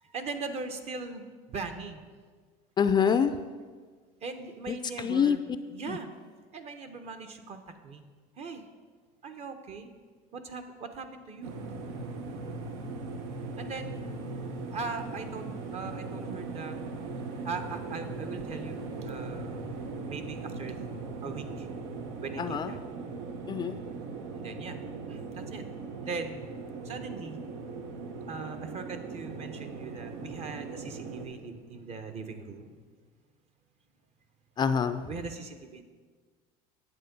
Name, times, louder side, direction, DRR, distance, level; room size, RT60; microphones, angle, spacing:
voice 1, 0.0-2.0 4.2-5.4 5.7-6.1 6.5-8.0 8.4-8.7 9.2-9.9 10.3-11.6 13.6-13.9 14.7-16.8 17.4-20.9 21.2-21.7 22.2-22.8 24.3-24.8 25.1-25.7 26.0-26.4 26.8-27.4 28.3-32.8 35.0-35.8, right 4 dB, 40° right, 7 dB, 1.1 m, -40 dB
voice 2, 2.8-3.3 5.0-5.4 5.9-6.0 22.4-22.7 23.5-23.8 34.6-35.0, left 7 dB, 25° left, 10 dB, 0.4 m, -25 dB
sound 1, 11.4-31.3, right 3 dB, 80° right, 1.2 m, -39 dB
9.8 x 7.9 x 5.4 m, 1.5 s
supercardioid pair, 125°, 16 cm